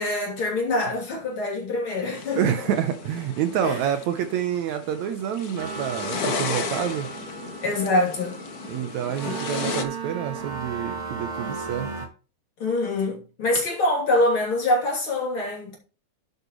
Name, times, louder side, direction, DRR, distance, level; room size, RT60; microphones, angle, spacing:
voice 1, 0.0-2.6 3.6-3.8 7.6-8.4 9.2-9.4 12.6-15.8, left 2 dB, 40° left, 3.7 m, -25 dB
sound 1, 2.1-9.8, left 4 dB, 85° left, 0.8 m, -34 dB
voice 2, 2.3-7.1 8.7-11.9, right 9 dB, 70° right, 2.0 m, -27 dB
sound 2, 5.6-12.1, right 5 dB, 25° right, 2.0 m, -35 dB
11.0 x 7.8 x 3.1 m
omnidirectional pair, 3.7 m